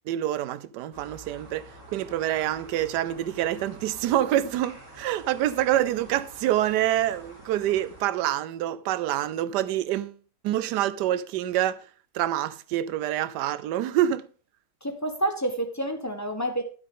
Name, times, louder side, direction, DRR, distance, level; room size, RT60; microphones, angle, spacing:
voice 1, 0.1-1.6 1.9-10.2 10.4-11.8 12.1-14.3, right 12 dB, 75° right, 1.2 m, -26 dB
sound 1, 0.9-8.0, right 1 dB, 45° right, 3.4 m, -48 dB
voice 2, 14.8-16.6, right 1 dB, 10° left, 0.9 m, -28 dB
10.5 x 8.8 x 3.7 m
omnidirectional pair, 1.8 m